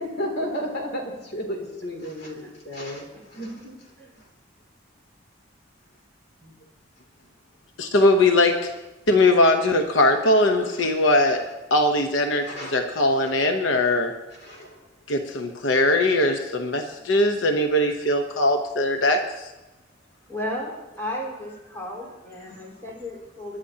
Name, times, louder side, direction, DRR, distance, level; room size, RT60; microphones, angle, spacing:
voice 1, 0.1-1.0 1.3-3.0 3.3-3.7 6.4-6.5 10.7-10.9 12.5-12.7 14.4-14.8 22.5-22.6, equal, 60° left, 0 dB, 2.8 m, -32 dB
voice 2, 7.8-8.6 9.1-11.4 11.7-14.1 15.1-19.5, left 1 dB, 90° left, 5 dB, 1.0 m, -20 dB
voice 3, 20.3-23.6, left 1 dB, 15° left, -4 dB, 4.4 m, -34 dB
25.5 x 11.0 x 2.8 m, 1.1 s
head